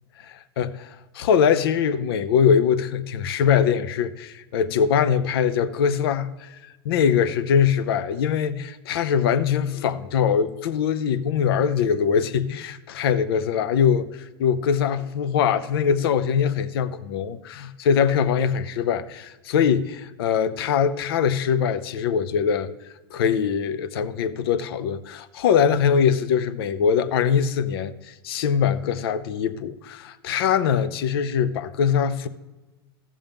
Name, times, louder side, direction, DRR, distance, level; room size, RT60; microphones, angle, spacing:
voice 1, 0.6-6.6 6.8-22.7 23.1-32.3, left 7 dB, 70° left, 0.6 m, -22 dB
14.5 x 7.1 x 3.5 m
hypercardioid pair, 110°, 13 cm